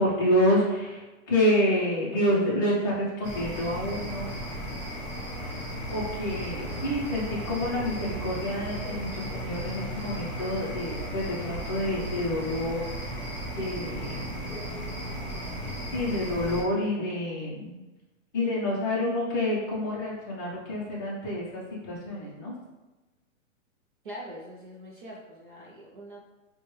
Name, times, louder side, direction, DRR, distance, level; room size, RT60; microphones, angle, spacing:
voice 1, 0.0-4.3 5.4-12.9 13.6-14.4 15.9-17.8 18.3-22.5, left 1 dB, 15° left, -6 dB, 0.5 m, -28 dB
sound 1, 3.2-16.6, right 1 dB, ahead, 1.0 m, -35 dB
voice 2, 24.0-26.2, equal, 40° right, -3 dB, 0.4 m, -43 dB
4.6 x 2.2 x 3.0 m, 1.1 s
hypercardioid pair, 160°, 42 cm